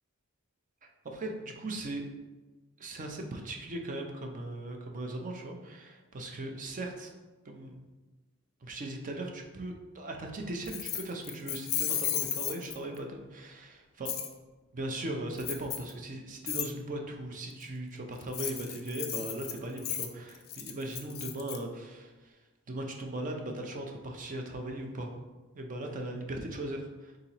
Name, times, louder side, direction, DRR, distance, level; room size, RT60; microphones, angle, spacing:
voice 1, 1.0-2.1 2.8-7.1 7.4-7.9 8.6-14.1 14.7-22.4 22.7-25.2 25.5-27.2, right 1 dB, 35° right, 2 dB, 0.5 m, -38 dB
Keys jangling, 10.7-13.0 14.1-14.3 15.4-15.9 16.5-16.7 18.2-21.6, left 10 dB, 45° left, 0.4 m, -34 dB
4.2 x 3.8 x 2.9 m, 1.2 s
head